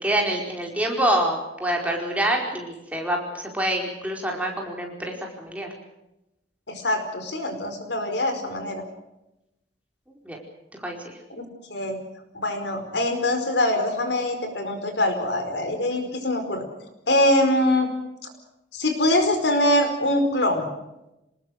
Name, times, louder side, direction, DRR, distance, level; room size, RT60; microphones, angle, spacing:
voice 1, 0.0-5.7 10.2-10.4 10.8-11.2, right 1 dB, 10° right, 0 dB, 4.7 m, -26 dB
voice 2, 6.7-8.8 11.4-11.5 11.7-12.0 12.3-16.6 17.1-17.9 18.7-20.7, left 1 dB, 70° left, 7 dB, 5.0 m, -23 dB
27.0 x 20.0 x 6.5 m, 0.91 s
head